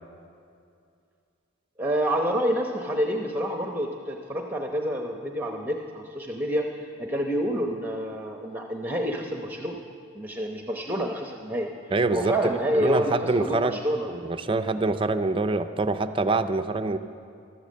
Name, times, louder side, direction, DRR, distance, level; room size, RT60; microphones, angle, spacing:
voice 1, 1.8-6.7 7.0-9.8 10.1-11.7 12.1-14.1, equal, 10° right, 2 dB, 0.8 m, -28 dB
voice 2, 11.9-12.3 12.7-13.8 14.1-17.0, right 3 dB, 25° right, 9 dB, 0.4 m, -25 dB
13.5 x 13.0 x 7.5 m, 2.5 s
head